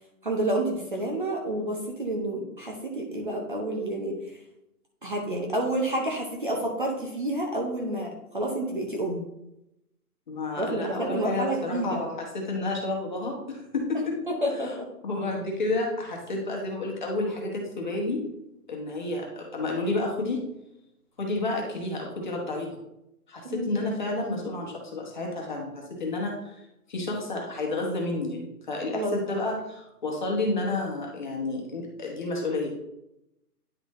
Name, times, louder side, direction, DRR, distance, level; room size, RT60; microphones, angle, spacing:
voice 1, 0.2-4.2 5.0-9.2 10.6-12.0 14.3-14.9 23.4-23.7 28.9-29.2, right 1 dB, 30° right, 0 dB, 0.8 m, -29 dB
voice 2, 10.3-14.2 14.6-14.7 15.0-18.2 18.7-20.4 21.2-22.8 23.3-32.7, left 2 dB, 30° left, -1 dB, 1.2 m, -30 dB
9.8 x 4.0 x 3.1 m, 0.86 s
hypercardioid pair, 170°, 48 cm